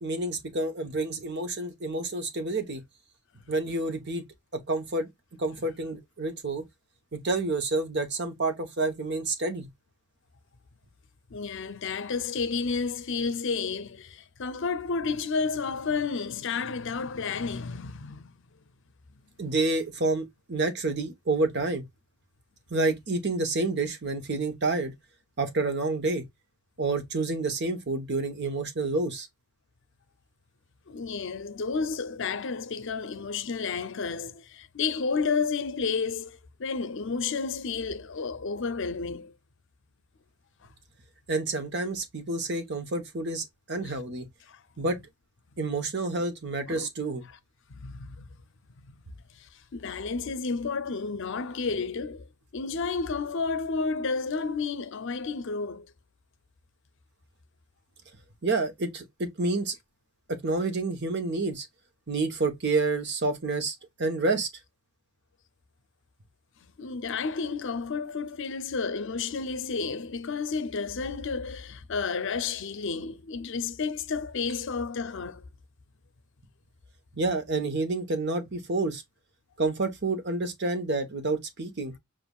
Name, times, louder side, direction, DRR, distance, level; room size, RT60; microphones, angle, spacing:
voice 1, 0.0-2.8 3.5-4.2 4.7-5.1 5.4-6.6 7.1-9.7 19.4-21.8 22.7-24.9 25.4-26.2 26.8-29.3 41.3-44.3 44.8-45.0 45.6-47.2 58.4-59.8 60.3-61.7 62.1-64.5 77.1-79.0 79.6-81.9, right 3 dB, 55° right, 1.0 m, -29 dB
voice 2, 11.3-18.3 30.9-39.3 43.9-44.0 44.5-44.6 46.7-46.9 47.7-48.3 49.4-52.3 52.5-55.9 66.8-75.4, left 4 dB, 60° left, 0.6 m, -31 dB
7.0 x 2.5 x 2.3 m
head